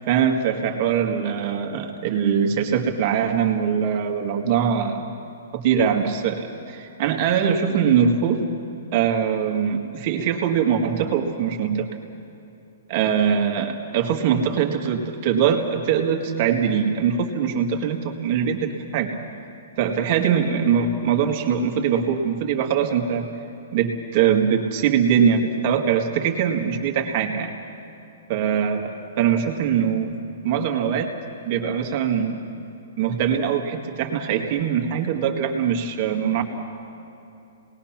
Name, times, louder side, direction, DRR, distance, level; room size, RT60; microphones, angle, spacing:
voice 1, 0.1-5.1 5.5-8.5 8.9-11.9 12.9-19.2 19.8-23.3 23.7-27.5 28.3-30.1 30.4-31.1 31.5-32.4 33.0-36.4, right 7 dB, 35° right, 3 dB, 1.9 m, -22 dB
28.5 x 20.0 x 6.0 m, 2.8 s
hypercardioid pair, 165°, 0 cm